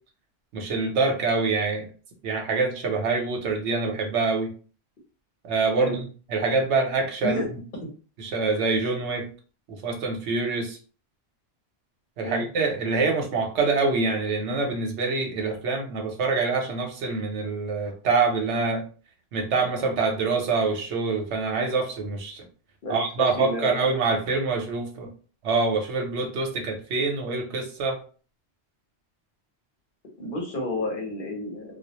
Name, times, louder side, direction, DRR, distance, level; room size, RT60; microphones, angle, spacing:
voice 1, 0.5-1.9 2.2-4.5 5.4-7.6 8.2-9.3 9.8-10.8 12.2-18.8 19.3-22.5 22.9-25.1 25.4-28.0, right 4 dB, 85° right, 2 dB, 1.0 m, -25 dB
voice 2, 23.4-23.7 30.2-31.8, left 1 dB, 55° left, 0 dB, 0.9 m, -30 dB
2.3 x 2.0 x 2.8 m, 0.39 s
omnidirectional pair, 1.1 m